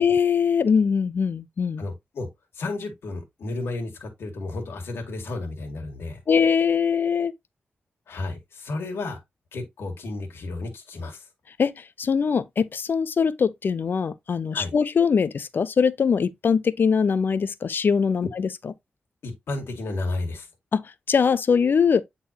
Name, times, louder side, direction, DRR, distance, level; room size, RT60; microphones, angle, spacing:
voice 1, 0.0-1.8 6.3-7.3 11.6-18.7 20.7-22.0, left 6 dB, 55° left, 0.6 m, -22 dB
voice 2, 1.8-2.3 2.6-6.2 8.1-9.2 9.5-11.3 14.5-14.7 19.2-20.5, left 2 dB, 85° left, 1.9 m, -32 dB
8.6 x 3.9 x 2.8 m
wide cardioid pair, 110°, 4 cm